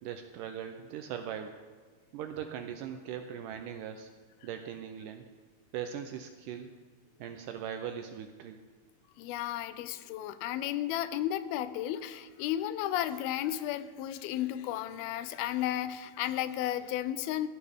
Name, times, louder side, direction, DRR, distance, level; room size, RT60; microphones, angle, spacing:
voice 1, 0.0-1.6 2.1-4.1 4.4-5.2 5.7-6.7 7.2-8.6 9.7-9.9, right 9 dB, 85° right, 6 dB, 1.9 m, -40 dB
voice 2, 9.2-17.5, left 12 dB, 90° left, 13 dB, 2.5 m, -33 dB
16.0 x 12.0 x 3.6 m, 1.4 s
omnidirectional pair, 4.3 m